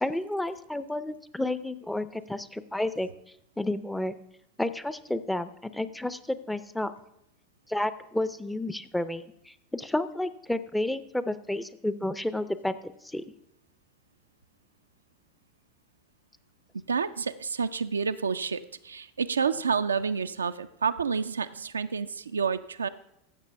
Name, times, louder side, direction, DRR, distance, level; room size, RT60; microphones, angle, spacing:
voice 1, 0.0-3.1 3.6-4.1 4.6-6.9 7.7-13.2, left 1 dB, 5° left, 14 dB, 0.5 m, -31 dB
voice 2, 16.9-22.9, right 6 dB, 85° right, 10 dB, 0.3 m, -29 dB
15.0 x 6.6 x 3.4 m, 0.78 s
figure-of-eight pair, 85°, 0 cm